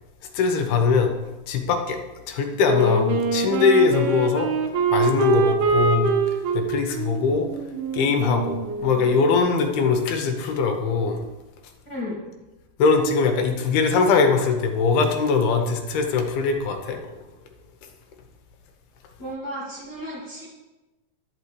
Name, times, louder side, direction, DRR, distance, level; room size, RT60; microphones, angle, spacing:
voice 1, 0.3-1.1 1.5-2.0 2.3-4.5 4.9-6.1 6.5-7.5 7.9-11.2 12.8-17.0, left 5 dB, 75° left, 4 dB, 2.9 m, -21 dB
Wind instrument woodwind instrument, 2.6-9.2, right 5 dB, 75° right, 2.7 m, -24 dB
voice 2, 11.8-12.2 19.2-20.5, equal, 50° left, -5 dB, 1.2 m, -34 dB
11.5 x 4.5 x 8.1 m, 1.1 s
omnidirectional pair, 4.5 m